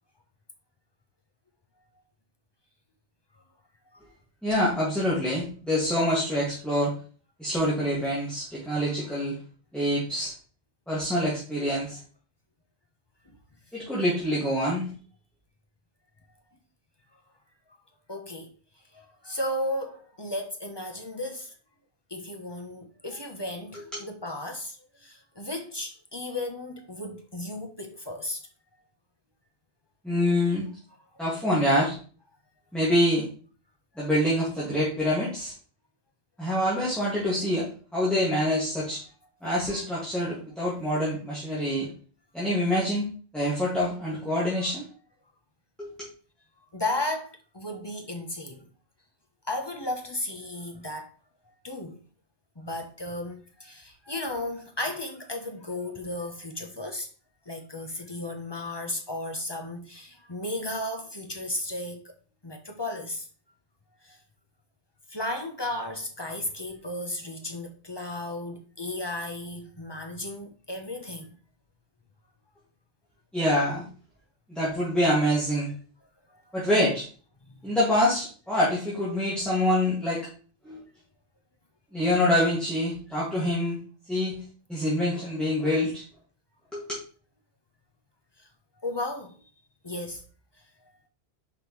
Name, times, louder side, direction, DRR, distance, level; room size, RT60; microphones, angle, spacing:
voice 1, 4.4-6.9 7.4-9.4 9.7-10.3 10.9-12.0 13.7-14.9 23.7-24.0 30.0-30.7 31.2-32.0 32.7-33.3 34.0-35.5 36.4-39.0 39.4-41.9 42.3-44.8 45.8-46.1 73.3-73.9 74.5-75.7 76.5-77.1 77.6-80.3 80.6-80.8 81.9-83.8 84.1-84.4 84.7-86.0 86.7-87.0, left 1 dB, ahead, 1.8 m, -26 dB
voice 2, 18.1-18.5 18.9-21.5 22.1-28.4 46.7-48.7 49.5-51.1 51.5-52.0 52.6-57.1 57.5-62.0 62.4-63.3 64.0-64.2 65.1-71.3 76.3-76.4 77.5-77.7 88.4-88.5 88.8-89.4 89.8-90.2, left 1 dB, 25° left, 0.8 m, -34 dB
5.9 x 5.1 x 3.1 m
omnidirectional pair, 1.2 m